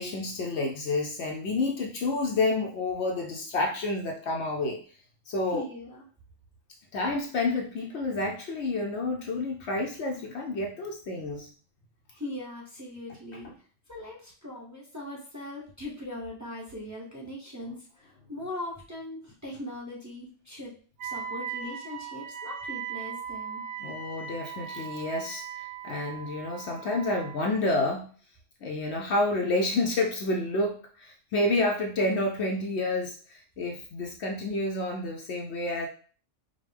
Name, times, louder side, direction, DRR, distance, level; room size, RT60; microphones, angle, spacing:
voice 1, 0.0-4.8 5.3-5.6 6.9-11.5 23.8-28.0 28.6-35.9, left 2 dB, 65° left, 1 dB, 0.8 m, -29 dB
voice 2, 5.5-6.0 12.1-13.5 13.9-20.7 21.0-23.6, left 1 dB, 15° right, -4 dB, 0.8 m, -40 dB
Wind instrument woodwind instrument, 21.0-27.4, right 7 dB, 85° right, 1.0 m, -38 dB
5.0 x 2.2 x 3.3 m, 0.42 s
omnidirectional pair, 1.4 m